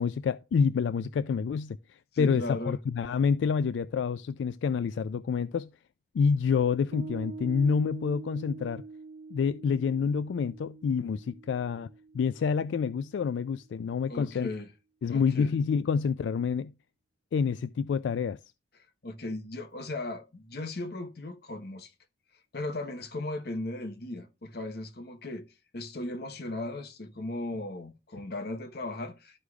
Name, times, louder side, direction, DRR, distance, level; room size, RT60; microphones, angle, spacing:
voice 1, 0.0-5.7 6.1-8.8 9.3-11.9 12.1-14.5 15.0-16.7 17.3-18.4, left 6 dB, 90° left, 0.3 m, -28 dB
voice 2, 2.1-2.8 14.1-14.7 15.1-15.5 19.0-21.9 22.5-25.5 25.7-29.4, left 2 dB, 60° left, 1.0 m, -37 dB
Piano, 6.9-13.7, right 4 dB, 65° right, 0.5 m, -46 dB
13.0 x 4.8 x 2.3 m
head